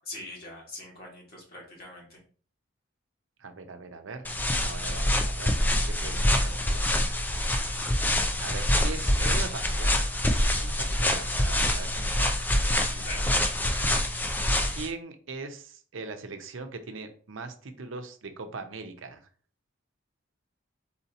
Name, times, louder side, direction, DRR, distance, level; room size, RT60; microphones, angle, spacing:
voice 1, 0.0-2.2 12.9-13.6, left 1 dB, 50° left, -2 dB, 1.6 m, -42 dB
voice 2, 3.4-4.3 4.6-6.9 8.4-10.0 10.6-12.3 14.7-19.2, right 4 dB, 80° right, 7 dB, 0.6 m, -40 dB
sound 1, 4.2-14.9, left 1 dB, 10° left, 0.3 m, -26 dB
4.2 x 2.8 x 4.0 m, 0.43 s
head